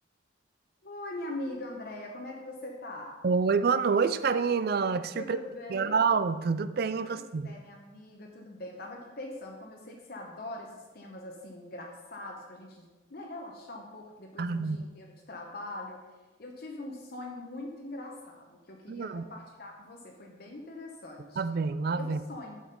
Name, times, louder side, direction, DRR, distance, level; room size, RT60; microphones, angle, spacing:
voice 1, 0.8-3.2 5.1-6.0 7.0-16.0 16.4-21.4 21.9-22.6, left 1 dB, 55° left, 0 dB, 1.0 m, -42 dB
voice 2, 3.2-5.4 5.7-7.5 14.4-14.8 18.9-19.2 21.4-22.2, right 5 dB, 55° right, 13 dB, 0.4 m, -27 dB
7.4 x 6.3 x 5.3 m, 1.2 s
head